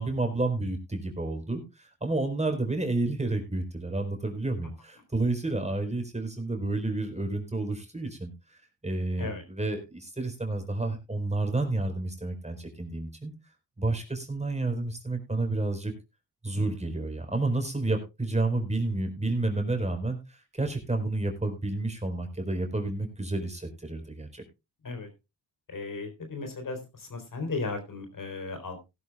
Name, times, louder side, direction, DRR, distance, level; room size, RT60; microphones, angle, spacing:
voice 1, 0.0-13.3 13.8-15.9 16.4-24.4, right 2 dB, 15° right, 4 dB, 4.6 m, -30 dB
voice 2, 25.7-28.8, left 3 dB, 50° left, 6 dB, 4.0 m, -35 dB
17.5 x 11.5 x 2.4 m, 0.26 s
cardioid pair, 65°, 39 cm